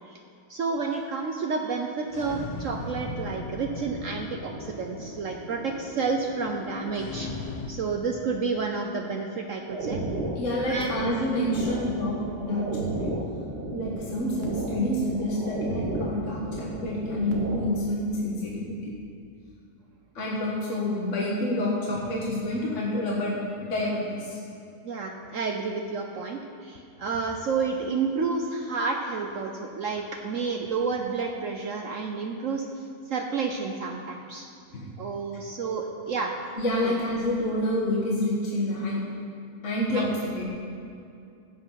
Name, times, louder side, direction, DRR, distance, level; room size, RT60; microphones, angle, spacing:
voice 1, 0.5-10.0 10.7-11.0 24.8-32.7 33.1-34.4 35.0-36.3 36.8-36.9 39.9-40.0, right 4 dB, 60° right, 2 dB, 1.1 m, -30 dB
sound 1, 2.0-7.7, left 3 dB, 35° left, 0.8 m, -38 dB
sound 2, 9.7-17.8, right 2 dB, 90° right, 2.0 m, -33 dB
voice 2, 10.4-13.1 13.7-18.9 20.2-24.4 34.7-34.9 36.6-39.0 39.6-40.4, left 1 dB, 50° left, -4 dB, 1.8 m, -28 dB
16.0 x 7.8 x 5.7 m, 2.5 s
omnidirectional pair, 1.7 m